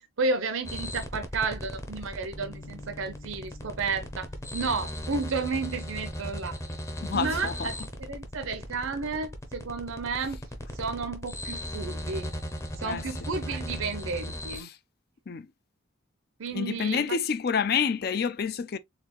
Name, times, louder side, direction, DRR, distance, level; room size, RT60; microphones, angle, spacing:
voice 1, 0.0-6.6 7.1-10.4 10.7-12.3 12.8-14.7 16.4-17.2, right 4 dB, 75° right, 0.6 m, -32 dB
sound 1, 0.6-14.6, equal, 15° left, 0.7 m, -37 dB
Bass guitar, 2.3-8.6, left 2 dB, 80° left, 1.0 m, -51 dB
voice 2, 7.0-7.7 12.8-13.0 14.6-14.8 15.3-15.5 16.5-18.8, left 6 dB, 45° left, 0.4 m, -28 dB
4.1 x 3.7 x 2.9 m
head